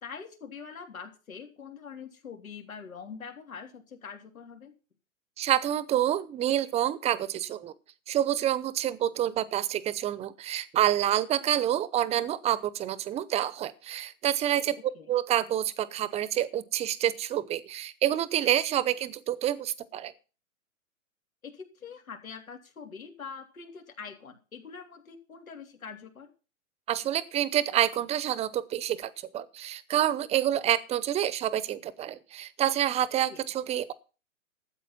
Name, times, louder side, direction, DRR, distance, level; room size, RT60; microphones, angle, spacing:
voice 1, 0.0-4.7 14.9-15.1 21.4-26.3 33.3-33.4, left 6 dB, 90° left, 3 dB, 3.5 m, -44 dB
voice 2, 5.4-7.7 8.1-14.8 15.1-20.1 26.9-33.9, right 11 dB, 15° right, 19 dB, 0.7 m, -28 dB
13.0 x 8.2 x 5.9 m, 0.35 s
hypercardioid pair, 120°, 40 cm